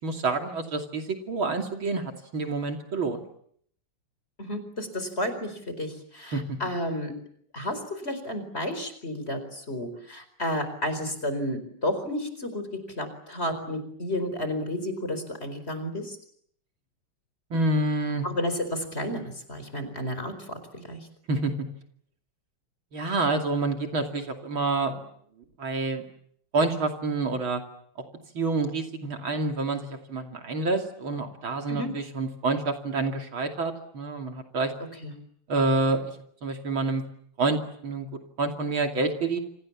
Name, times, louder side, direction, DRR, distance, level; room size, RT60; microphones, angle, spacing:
voice 1, 0.0-3.2 6.3-6.6 17.5-18.3 21.3-21.5 22.9-25.0 25.6-26.0 26.5-27.6 28.4-34.7 35.5-36.1 36.4-37.0 37.4-38.1 38.4-39.4, right 3 dB, 65° right, 4 dB, 3.4 m, -28 dB
voice 2, 4.4-7.1 7.5-12.6 13.0-16.2 18.2-21.1 31.7-31.9 35.0-35.1, left 1 dB, 25° left, 10 dB, 4.8 m, -32 dB
29.5 x 26.5 x 7.4 m, 0.67 s
omnidirectional pair, 2.4 m